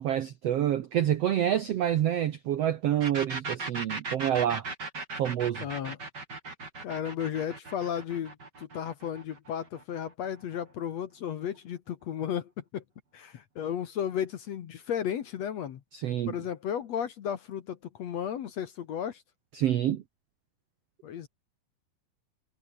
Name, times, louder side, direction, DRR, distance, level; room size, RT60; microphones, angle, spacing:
voice 1, 0.0-4.6 5.2-5.6 15.9-16.3 19.6-20.0, right 11 dB, 75° right, 1.4 m, -27 dB
sound 1, 3.0-10.5, right 3 dB, 25° right, 5.1 m, -38 dB
voice 2, 5.6-6.0 6.8-12.8 13.1-15.8 16.3-19.2 21.0-21.3, left 9 dB, 60° left, 2.0 m, -34 dB
omnidirectional pair, 4.3 m